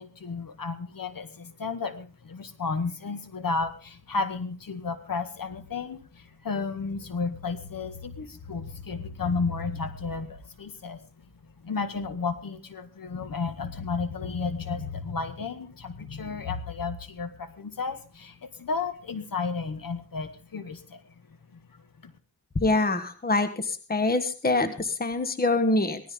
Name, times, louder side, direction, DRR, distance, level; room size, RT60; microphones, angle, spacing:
voice 1, 0.0-11.1 11.4-22.1, left 4 dB, 60° left, 10 dB, 1.9 m, -33 dB
voice 2, 22.5-26.0, left 2 dB, 25° left, 10 dB, 1.4 m, -25 dB
18.5 x 13.5 x 3.8 m, 0.35 s
cardioid pair, 75°, 39 cm